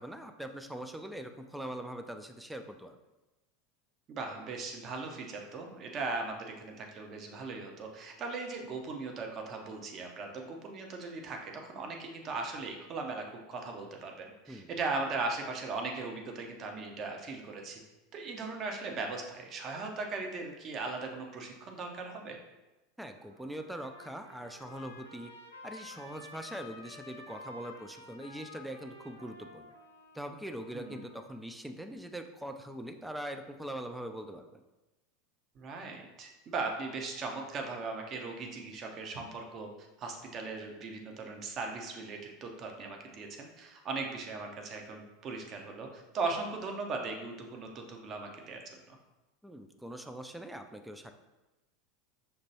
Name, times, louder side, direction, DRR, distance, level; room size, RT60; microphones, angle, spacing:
voice 1, 0.0-3.0 14.5-14.7 23.0-25.3 25.6-29.7 30.1-34.6 49.4-51.1, right 1 dB, 5° right, 6 dB, 0.4 m, -42 dB
voice 2, 4.1-17.8 18.1-22.4 30.7-31.0 35.6-39.7 40.0-48.6 48.9-49.0, right 3 dB, 40° right, 3 dB, 0.7 m, -38 dB
Trumpet, 23.1-31.4, left 2 dB, 90° left, 0.4 m, -51 dB
5.3 x 2.9 x 2.8 m, 1.1 s
figure-of-eight pair, 80°, 0 cm